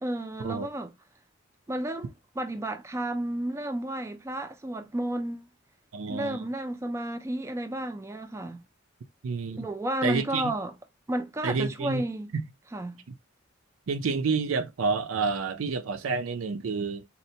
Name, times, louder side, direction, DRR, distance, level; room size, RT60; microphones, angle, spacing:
voice 1, 0.0-0.9 1.7-5.4 6.1-8.6 9.6-10.7 11.1-12.3 12.7-13.0, right 1 dB, 15° right, 0.3 m, -32 dB
voice 2, 5.9-6.4 9.2-9.7 10.0-10.5 11.4-12.0 12.3-12.4 13.9-17.1, right 4 dB, 85° right, 0.5 m, -29 dB
4.2 x 2.1 x 2.7 m
head